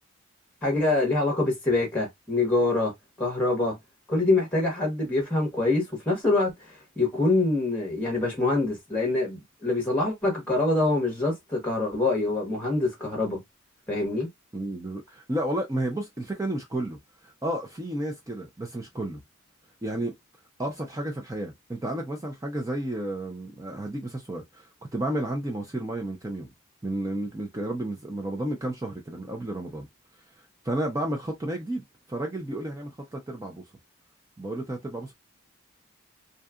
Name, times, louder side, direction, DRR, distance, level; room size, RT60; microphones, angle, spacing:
voice 1, 0.6-2.9 3.2-3.8 4.1-13.4 13.9-14.3, left 2 dB, 5° left, 0.9 m, -25 dB
voice 2, 14.5-19.2 19.8-20.1 20.6-24.7 24.9-26.5 26.8-29.9 30.6-33.6 34.4-35.1, right 1 dB, 15° right, 0.4 m, -32 dB
2.7 x 2.3 x 2.3 m
head